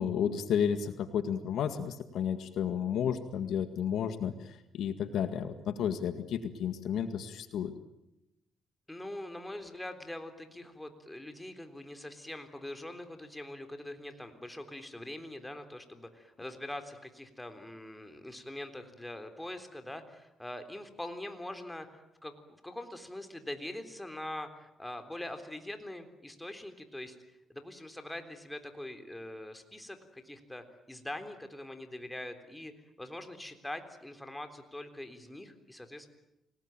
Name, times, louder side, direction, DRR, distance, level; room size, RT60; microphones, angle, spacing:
voice 1, 0.0-4.3 4.7-7.7, left 8 dB, 75° left, 9 dB, 1.9 m, -32 dB
voice 2, 8.9-36.1, left 1 dB, 10° left, 7 dB, 3.7 m, -43 dB
28.0 x 19.5 x 9.1 m, 0.88 s
cardioid pair, 90°, 0 cm